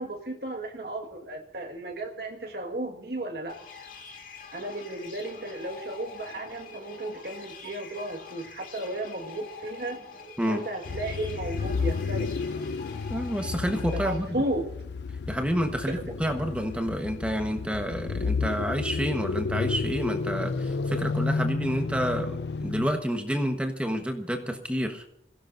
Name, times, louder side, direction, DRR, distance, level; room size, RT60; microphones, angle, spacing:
voice 1, 0.0-3.6 4.5-10.0 10.5-12.4 13.9-14.7 15.9-16.0, right 1 dB, 60° right, 2 dB, 1.8 m, -34 dB
sound 1, 3.5-14.2, left 5 dB, 45° left, 2.4 m, -45 dB
sound 2, 10.9-23.0, left 4 dB, 65° left, 0.5 m, -31 dB
voice 2, 13.1-14.3 15.3-25.0, equal, 5° right, 5 dB, 1.2 m, -29 dB
27.5 x 16.5 x 2.6 m, 0.74 s
head